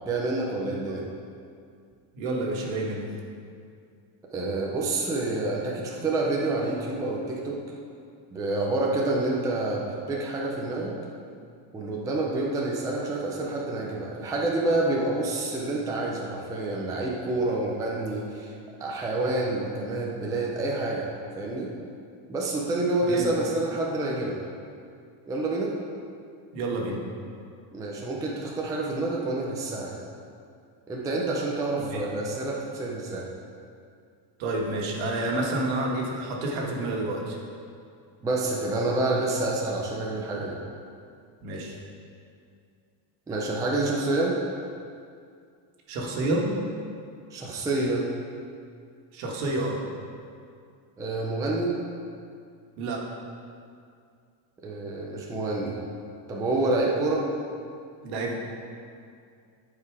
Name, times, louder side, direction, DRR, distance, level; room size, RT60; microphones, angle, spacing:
voice 1, 0.1-1.0 4.3-7.6 8.3-11.0 11.7-18.5 18.8-21.1 21.4-21.7 22.3-24.4 25.3-25.7 27.7-30.0 30.9-33.3 38.2-40.6 43.3-44.4 47.3-48.0 51.0-51.8 54.6-55.8 56.3-57.2, right 2 dB, 10° right, -3 dB, 0.4 m, -28 dB
voice 2, 2.1-3.1 23.0-23.3 26.5-27.0 31.8-32.0 34.4-37.4 41.4-41.8 45.9-46.5 49.1-49.8 52.8-53.0 58.0-58.4, right 2 dB, 70° right, -1 dB, 1.7 m, -29 dB
11.5 x 4.8 x 4.7 m, 2.3 s
cardioid pair, 180°, 47 cm